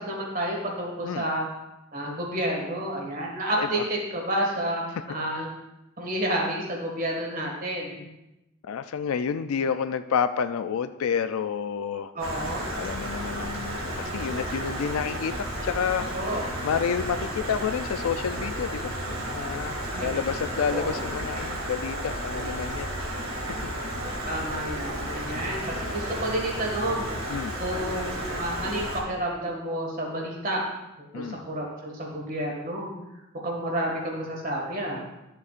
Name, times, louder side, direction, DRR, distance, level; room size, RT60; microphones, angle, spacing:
voice 1, 0.0-1.5 1.9-4.8 5.1-5.5 6.0-8.0 12.1-12.7 16.0-16.7 19.9-20.1 20.7-21.0 24.3-27.1 27.6-30.6 31.1-32.9 33.4-35.0, right 1 dB, 40° right, -1 dB, 1.9 m, -30 dB
voice 2, 8.6-12.1 12.8-16.1 16.6-19.0 19.3-22.9 27.3-27.5 31.1-31.4, left 7 dB, 80° left, 10 dB, 0.4 m, -29 dB
Stream, 12.2-29.0, right 1 dB, 65° right, 2.2 m, -32 dB
12.5 x 7.0 x 2.5 m, 0.94 s
head